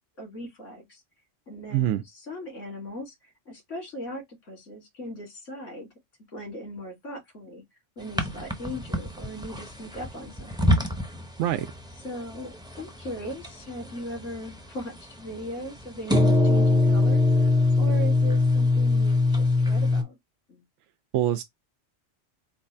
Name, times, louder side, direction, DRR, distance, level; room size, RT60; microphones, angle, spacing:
voice 1, 0.2-1.0 1.5-5.9 6.3-7.6 8.0-10.9 12.0-20.2 20.5-20.6, equal, 90° left, 2.5 m, -39 dB
voice 2, 1.7-2.0 11.4-11.7 21.1-21.4, right 12 dB, 80° right, 0.9 m, -24 dB
sound 1, 8.2-11.2 11.5-12.0 12.3-12.4 12.7-13.5 13.8-14.5 16.1-20.0, left 2 dB, 5° right, 0.5 m, -22 dB
4.4 x 2.4 x 4.2 m
omnidirectional pair, 1.2 m